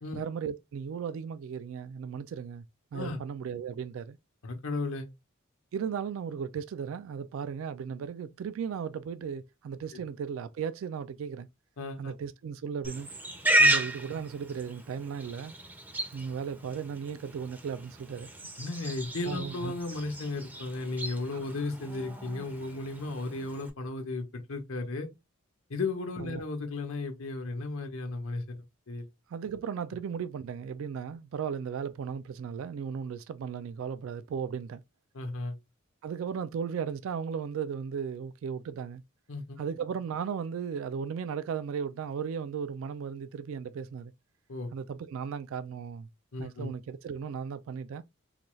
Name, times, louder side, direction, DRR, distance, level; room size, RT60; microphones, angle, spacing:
voice 1, 0.1-2.6 2.9-4.2 5.7-11.5 12.0-13.1 13.7-15.5 16.1-18.3 19.2-19.7 21.3-21.4 26.2-26.4 29.3-34.8 36.0-39.0 39.6-44.1 44.7-46.1 46.4-48.0, right 7 dB, 70° right, 0.3 m, -36 dB
voice 2, 4.4-5.1 11.8-12.1 13.6-13.7 18.6-25.1 25.7-28.6 28.9-29.1 35.1-35.5 39.3-39.6 44.5-44.7 46.3-46.7, left 2 dB, 75° left, 0.8 m, -35 dB
Livestock farm animals working animals, 12.8-23.7, right 1 dB, 10° right, 0.5 m, -33 dB
4.0 x 2.3 x 3.0 m
head